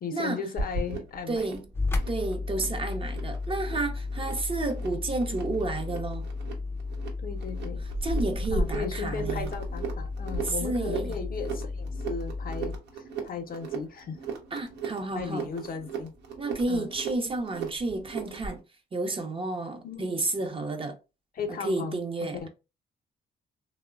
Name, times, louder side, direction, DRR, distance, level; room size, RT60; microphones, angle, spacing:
voice 1, 0.0-1.5 7.2-7.8 8.5-14.2 15.1-16.1 16.7-16.9 19.8-20.2 21.3-22.5, left 5 dB, 55° left, 0.6 m, -36 dB
sound 1, 0.6-18.6, right 3 dB, 80° right, 0.8 m, -37 dB
voice 2, 1.3-1.6 2.1-6.2 8.0-9.5 10.4-11.1 14.5-15.5 16.4-18.6 18.9-20.9 21.5-22.5, right 2 dB, 30° right, 0.6 m, -31 dB
sound 2, 1.7-12.8, left 3 dB, 15° left, 0.5 m, -34 dB
3.0 x 2.0 x 2.3 m
cardioid pair, 75°, 18 cm